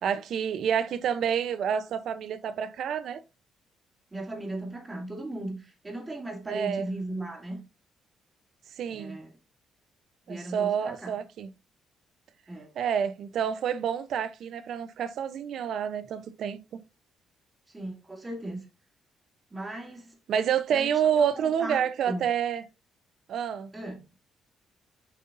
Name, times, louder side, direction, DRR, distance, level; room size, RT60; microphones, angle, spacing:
voice 1, 0.0-3.2 6.5-6.9 8.8-9.2 10.3-11.5 12.8-16.6 20.3-22.6 23.3-23.7, right 8 dB, 70° right, 0.7 m, -28 dB
voice 2, 4.1-7.6 8.9-9.3 10.3-11.2 12.5-12.7 17.7-18.7 19.5-20.2 20.7-20.9 21.2-22.3 23.7-24.1, right 1 dB, 20° right, 2.4 m, -37 dB
7.5 x 5.4 x 2.6 m
cardioid pair, 90°, 0 cm